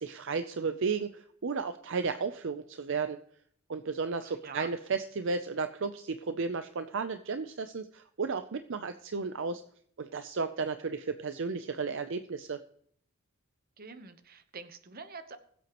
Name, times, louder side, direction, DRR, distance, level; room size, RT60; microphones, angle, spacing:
voice 1, 0.0-3.2 3.7-9.6 10.0-12.6, right 4 dB, 60° right, 9 dB, 0.6 m, -33 dB
voice 2, 4.2-4.7 13.8-15.4, right 4 dB, 45° right, 10 dB, 1.0 m, -46 dB
21.0 x 8.1 x 3.0 m, 0.64 s
head